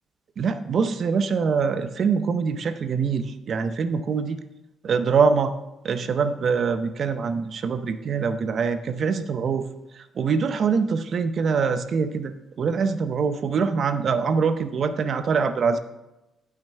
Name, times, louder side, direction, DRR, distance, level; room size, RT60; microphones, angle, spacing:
voice 1, 0.4-4.4 4.8-5.5 5.8-9.7 9.9-15.8, right 5 dB, 55° right, 10 dB, 0.7 m, -24 dB
12.0 x 5.8 x 3.4 m, 1.0 s
cardioid pair, 90°, 0 cm